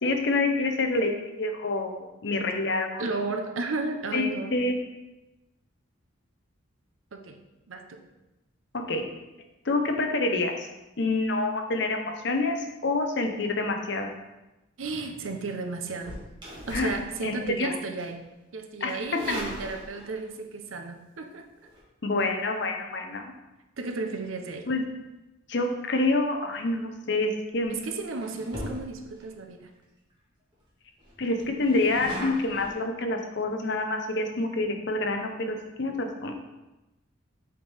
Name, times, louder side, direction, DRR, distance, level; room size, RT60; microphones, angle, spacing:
voice 1, 0.0-3.0 4.1-4.7 8.7-9.0 9.6-10.5 11.0-12.6 12.8-14.1 16.7-16.9 17.2-17.7 18.8-19.0 22.0-23.3 24.7-24.8 25.5-27.7 31.2-36.3, left 2 dB, 60° left, 4 dB, 0.8 m, -27 dB
voice 2, 3.0-4.6 7.1-7.4 7.7-8.0 14.8-16.2 16.7-18.2 18.5-21.5 23.8-24.7 27.7-29.7, right 3 dB, 85° right, 5 dB, 0.7 m, -33 dB
sound 1, 15.9-17.6 18.0-18.2 18.9-20.3 21.6-21.8 26.8-27.1 27.6-27.8 28.1-29.2 29.8-29.9 30.1-30.2 30.5-30.6 31.0-32.7, equal, 25° right, 1.7 m, -39 dB
7.6 x 4.5 x 3.4 m, 1.0 s
head